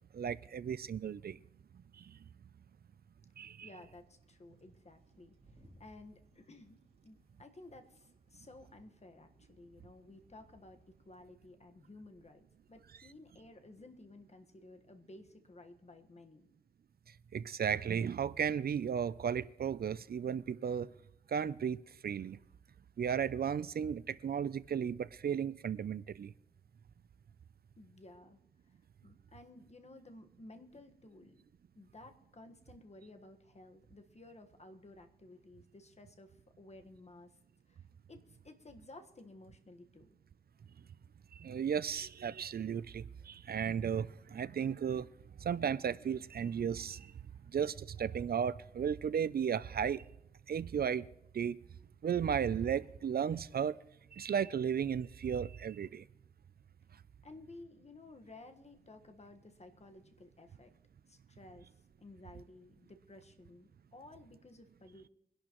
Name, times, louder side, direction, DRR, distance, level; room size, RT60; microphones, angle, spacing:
voice 1, 0.1-1.4 2.0-2.2 3.4-3.7 17.3-20.9 21.3-22.4 23.0-26.3 41.3-45.1 45.4-47.1 47.5-50.0 50.5-51.1 51.3-51.6 52.0-53.8 54.1-56.1, right 8 dB, 75° right, 0.4 m, -35 dB
voice 2, 3.6-5.3 5.8-6.8 7.0-16.5 27.8-28.4 28.7-31.4 31.7-37.3 37.7-37.8 38.1-40.1 47.2-47.5 57.2-60.7 61.1-61.7 62.0-65.1, left 2 dB, 45° left, 1.4 m, -55 dB
sound 1, 3.9-11.2, equal, 40° right, 5.0 m, -67 dB
23.0 x 11.5 x 3.0 m
wide cardioid pair, 95°, 16 cm